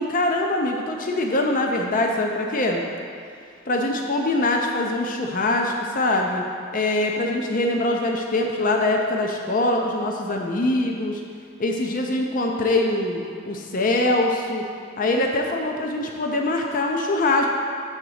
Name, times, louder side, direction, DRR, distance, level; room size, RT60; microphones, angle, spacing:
voice 1, 0.0-2.8 3.7-6.4 6.7-11.2 11.6-13.2 13.5-14.6 15.0-17.5, left 2 dB, 40° left, 1 dB, 0.5 m, -23 dB
7.1 x 3.9 x 6.3 m, 2.4 s
head